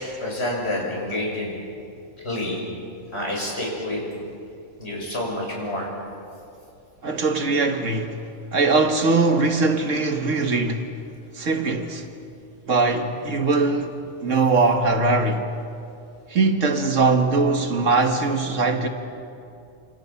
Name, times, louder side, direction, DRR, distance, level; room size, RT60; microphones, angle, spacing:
voice 1, 0.0-1.6 2.2-2.6 3.1-4.1 4.8-5.9, left 1 dB, 50° left, 6.8 m, -28 dB
voice 2, 7.0-8.2 8.5-10.9 11.4-12.0 12.7-13.9 14.2-15.5 16.3-18.9, right 3 dB, 70° right, 1.9 m, -21 dB
28.5 x 27.5 x 5.8 m
omnidirectional pair, 1.4 m